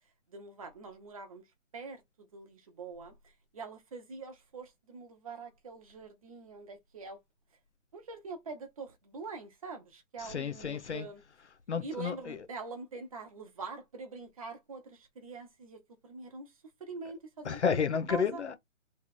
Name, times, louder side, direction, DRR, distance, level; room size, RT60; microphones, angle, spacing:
voice 1, 0.3-1.4 1.7-3.1 3.5-7.2 7.9-11.2 11.8-16.5 16.8-17.8 18.1-18.4, right 4 dB, 25° right, 0.9 m, -44 dB
voice 2, 10.2-11.1 11.7-12.4 17.4-18.6, left 6 dB, 60° left, 1.0 m, -31 dB
3.4 x 3.2 x 4.2 m
hypercardioid pair, 165°, 39 cm